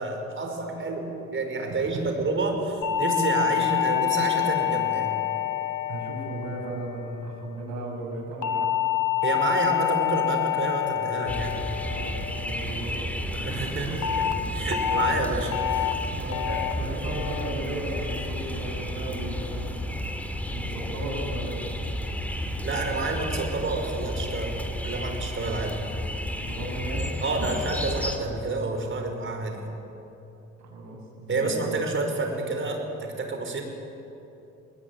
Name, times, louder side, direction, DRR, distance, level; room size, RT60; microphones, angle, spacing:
voice 1, 0.0-5.1 9.2-11.6 13.3-16.0 16.5-16.6 22.6-24.6 24.8-25.8 27.2-29.7 31.3-33.6, right 3 dB, 40° right, 3 dB, 5.4 m, -29 dB
voice 2, 1.7-2.1 5.9-8.8 11.8-14.0 16.1-16.5 16.8-19.8 20.5-21.7 26.4-27.1 30.6-31.7, right 2 dB, 70° right, 0 dB, 6.7 m, -36 dB
sound 1, 2.8-7.3 8.4-12.9 14.0-14.3 14.7-15.1 15.5-15.9 16.3-16.7 17.1-17.5 17.9-18.3, left 13 dB, 85° left, 1.3 m, -27 dB
sound 2, 11.3-28.2, left 1 dB, 5° left, 2.8 m, -32 dB
21.0 x 19.5 x 9.8 m, 2.9 s
cardioid pair, 90°, 30 cm